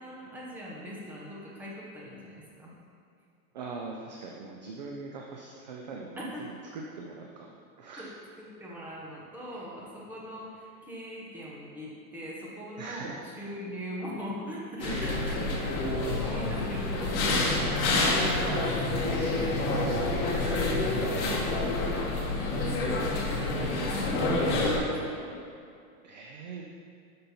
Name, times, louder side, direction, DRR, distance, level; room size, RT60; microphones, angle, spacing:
voice 1, 0.0-2.7 6.2-6.4 8.0-8.1 8.4-15.7 16.0-19.1 23.2-25.3, equal, 5° right, -6 dB, 0.9 m, -41 dB
voice 2, 3.5-7.5 7.8-8.1 12.8-13.2 14.9-15.6 19.0-20.7 26.0-26.6, right 4 dB, 30° right, 0 dB, 0.4 m, -41 dB
sound 1, 14.8-24.8, left 2 dB, 50° left, 2.2 m, -28 dB
12.0 x 5.4 x 4.2 m, 2.4 s
supercardioid pair, 170°, 45 cm